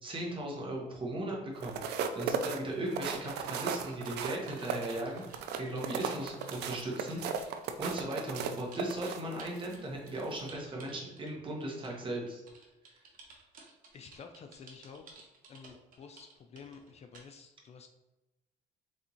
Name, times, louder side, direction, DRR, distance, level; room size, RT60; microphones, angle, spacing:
voice 1, 0.0-7.4 7.8-12.4 12.8-12.9, right 1 dB, 30° right, -1 dB, 1.2 m, -37 dB
sound 1, 1.5-9.7 10.2-10.4, right 7 dB, 80° right, 0.4 m, -36 dB
sound 2, 3.2-12.0 12.3-17.3, right 4 dB, 55° right, 1.1 m, -55 dB
voice 2, 13.9-15.2 15.5-17.9, left 5 dB, 40° left, 6 dB, 0.4 m, -51 dB
4.1 x 3.5 x 2.9 m, 1.0 s
cardioid pair, 110°, 17 cm